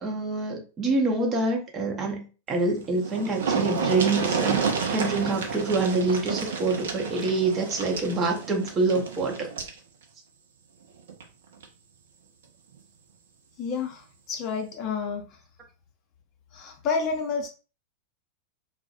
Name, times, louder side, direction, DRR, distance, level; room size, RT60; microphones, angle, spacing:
voice 1, 0.0-9.5, right 3 dB, 25° right, 1 dB, 0.7 m, -26 dB
sound 1, 2.7-2.8 3.0-9.8 11.1-11.2 11.6-11.7, right 5 dB, 60° right, 0.5 m, -30 dB
voice 2, 13.6-15.3 16.5-17.5, left 5 dB, 35° left, 3 dB, 0.5 m, -29 dB
2.2 x 2.0 x 2.8 m, 0.35 s
figure-of-eight pair, 90°, 0 cm